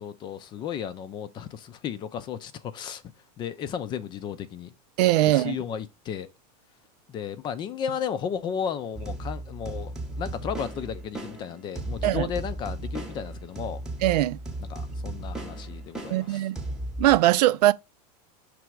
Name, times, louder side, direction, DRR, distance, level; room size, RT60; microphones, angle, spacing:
voice 1, 0.0-3.0 3.4-4.7 5.3-6.3 7.1-13.8 14.7-16.5, left 8 dB, 20° left, 0.5 m, -34 dB
voice 2, 5.0-5.6 12.0-12.3 14.0-14.4 16.1-16.6 17.0-17.7, right 15 dB, 80° right, 0.5 m, -21 dB
sound 1, 8.9-17.2, right 1 dB, 5° right, 0.9 m, -36 dB
6.2 x 3.4 x 4.7 m
supercardioid pair, 165°, 20 cm